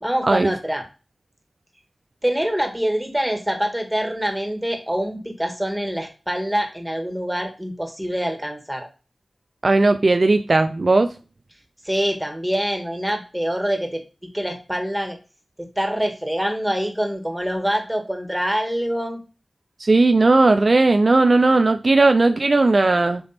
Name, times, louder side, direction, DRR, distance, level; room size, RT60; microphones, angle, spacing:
voice 1, 0.0-0.8 2.2-8.9 11.8-14.0 14.3-15.2 15.6-19.2, equal, 10° right, 4 dB, 1.7 m, -25 dB
voice 2, 9.6-11.1 19.8-23.2, right 2 dB, 55° right, 9 dB, 0.4 m, -16 dB
6.8 x 3.3 x 4.2 m, 0.33 s
cardioid pair, 40°, 0 cm